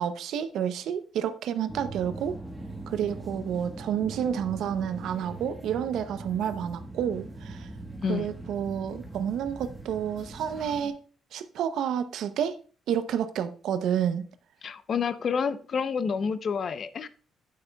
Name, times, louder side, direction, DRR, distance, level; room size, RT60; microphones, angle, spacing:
voice 1, 0.0-2.4 2.9-7.7 8.1-11.0 11.3-12.6 12.9-14.2, right 9 dB, 80° right, 0.6 m, -30 dB
sound 1, 1.7-10.9, right 2 dB, 10° right, 1.4 m, -41 dB
voice 2, 8.0-8.3 14.6-17.1, left 6 dB, 50° left, 0.6 m, -29 dB
8.8 x 8.5 x 2.3 m
cardioid pair, 90°, 0 cm